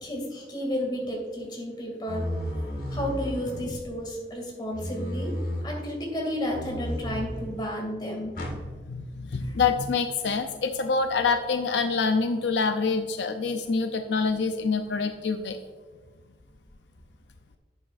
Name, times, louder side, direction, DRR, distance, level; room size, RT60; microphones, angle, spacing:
voice 1, 0.0-2.3 2.9-5.3 5.6-8.4 9.4-9.6, equal, 25° left, 0 dB, 2.3 m, -32 dB
sound 1, 2.1-4.0 4.7-5.7 6.5-7.6 8.3-8.6, equal, 50° left, 2.1 m, -33 dB
voice 2, 8.8-15.6, left 4 dB, 80° left, 7 dB, 0.5 m, -26 dB
11.5 x 7.1 x 2.5 m, 1.5 s
head